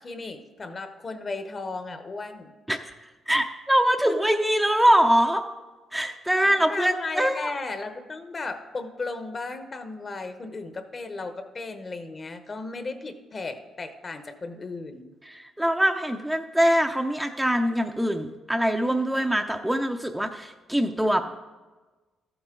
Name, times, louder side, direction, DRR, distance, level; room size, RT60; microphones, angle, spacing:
voice 1, 0.0-2.5 4.0-4.2 6.4-15.1, left 3 dB, 35° left, 8 dB, 1.0 m, -35 dB
voice 2, 3.3-5.4 5.9-7.5 15.3-21.4, equal, 5° right, 4 dB, 0.6 m, -23 dB
13.5 x 8.0 x 3.8 m, 1.2 s
cardioid pair, 90°, 0 cm